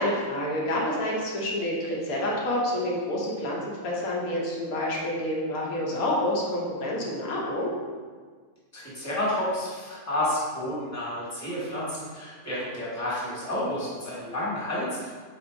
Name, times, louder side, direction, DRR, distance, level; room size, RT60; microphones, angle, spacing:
voice 1, 0.0-7.7, left 1 dB, 80° left, -3 dB, 1.2 m, -28 dB
voice 2, 8.7-15.1, left 1 dB, 10° left, -8 dB, 1.2 m, -30 dB
4.3 x 3.7 x 2.6 m, 1.6 s
omnidirectional pair, 1.5 m